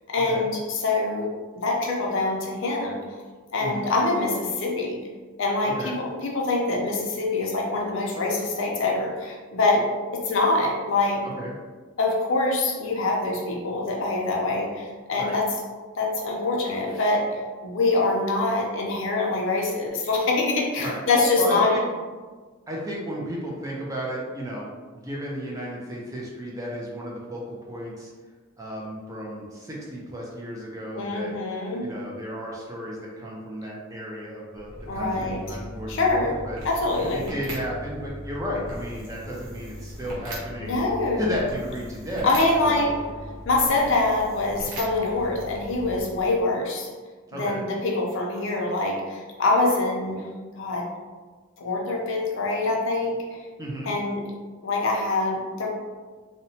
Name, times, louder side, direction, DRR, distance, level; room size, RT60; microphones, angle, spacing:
voice 1, 0.1-3.0 3.5-5.0 5.4-11.2 12.0-15.5 16.0-21.8 30.9-31.9 34.9-35.4 35.9-36.4 36.6-37.2 40.6-41.3 42.2-43.0 43.4-46.9 47.3-50.3 50.6-50.9 51.6-53.4 53.9-54.2 54.6-55.7, left 2 dB, 60° left, -1 dB, 0.5 m, -24 dB
voice 2, 5.6-5.9 11.2-11.5 15.2-15.3 20.8-21.0 21.4-21.8 22.7-28.1 28.6-31.3 31.8-36.6 37.0-40.8 41.2-42.8 47.3-47.6 53.6-53.9, equal, 15° right, -4 dB, 0.4 m, -33 dB
sound 1, 34.5-46.5, equal, 90° right, 0.8 m, -39 dB
2.8 x 2.1 x 2.7 m, 1.4 s
head